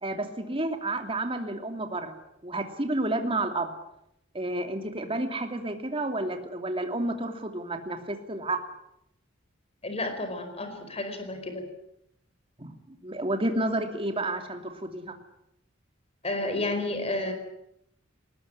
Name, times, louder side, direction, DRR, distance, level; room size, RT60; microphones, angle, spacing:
voice 1, 0.0-2.1 2.4-3.7 4.3-8.6 12.6-15.2, right 2 dB, 30° right, 6 dB, 2.8 m, -30 dB
voice 2, 9.8-11.7 16.2-17.3, left 2 dB, 30° left, 7 dB, 4.9 m, -31 dB
21.0 x 19.5 x 9.8 m, 0.80 s
head